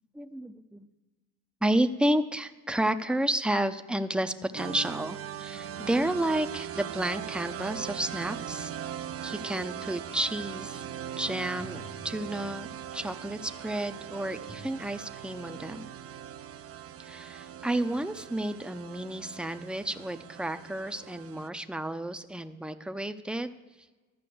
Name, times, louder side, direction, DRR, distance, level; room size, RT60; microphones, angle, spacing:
voice 1, 0.1-0.9 1.6-8.7 9.2-10.8 11.2-12.7 12.9-15.9 17.0-23.5, right 1 dB, 5° right, 8 dB, 0.6 m, -31 dB
sound 1, 4.6-21.5, right 9 dB, 45° right, 0.5 m, -40 dB
sound 2, 11.6-12.8 14.5-14.6, equal, 85° left, 4.6 m, -50 dB
12.5 x 5.6 x 7.8 m, 1.3 s
cardioid pair, 95°, 33 cm